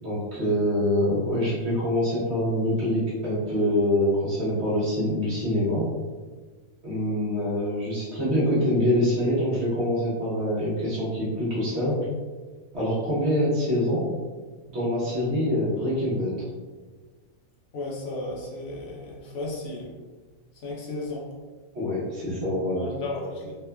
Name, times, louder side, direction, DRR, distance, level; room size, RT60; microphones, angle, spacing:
voice 1, 0.0-5.8 6.8-12.0 12.7-14.1 14.7-16.4 21.7-22.8, left 1 dB, 50° right, -8 dB, 1.1 m, -25 dB
voice 2, 17.7-19.9 20.6-21.3 22.7-23.5, left 2 dB, 70° left, -3 dB, 1.0 m, -34 dB
2.9 x 2.1 x 2.2 m, 1.4 s
omnidirectional pair, 1.6 m